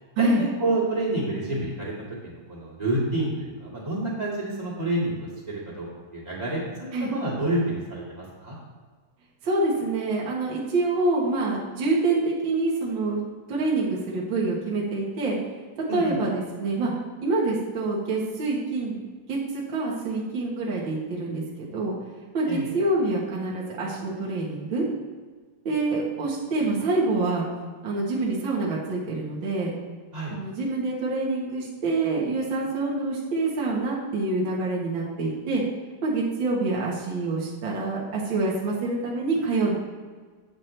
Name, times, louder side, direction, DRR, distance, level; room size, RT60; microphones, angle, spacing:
voice 1, 0.2-1.9 2.2-5.8 6.1-8.5 15.9-16.2 22.5-22.7 30.1-30.3, right 1 dB, 15° right, -6 dB, 1.6 m, -28 dB
voice 2, 9.4-13.2 13.5-15.4 15.9-16.9 17.2-19.0 19.3-21.4 21.7-22.0 22.3-24.8 25.6-27.4 27.8-29.7 30.3-35.6 36.0-39.8, right 2 dB, 50° right, -5 dB, 1.5 m, -26 dB
8.3 x 7.6 x 3.3 m, 1.5 s
omnidirectional pair, 3.7 m